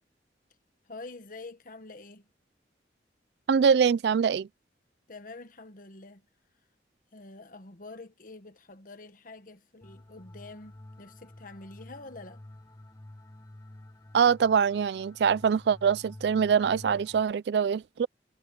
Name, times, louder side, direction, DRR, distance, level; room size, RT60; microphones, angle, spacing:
voice 1, 0.9-2.3 5.1-6.2 7.1-12.4, left 3 dB, 50° left, 1.4 m, -46 dB
voice 2, 3.5-4.5 14.1-18.1, right 6 dB, 70° right, 0.3 m, -24 dB
sound 1, 9.8-17.2, left 1 dB, 20° left, 0.9 m, -49 dB
head